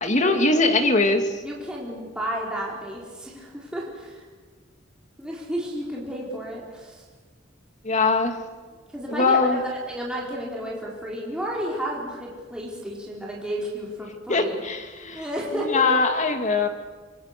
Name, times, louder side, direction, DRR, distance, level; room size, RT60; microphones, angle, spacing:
voice 1, 0.0-1.4 7.8-8.4 9.1-9.6 14.3-16.7, left 3 dB, 40° left, 6 dB, 2.4 m, -22 dB
voice 2, 1.4-4.2 5.2-7.0 8.9-14.6 15.1-15.9, equal, 5° right, -4 dB, 4.5 m, -32 dB
28.0 x 23.5 x 6.8 m, 1.5 s
head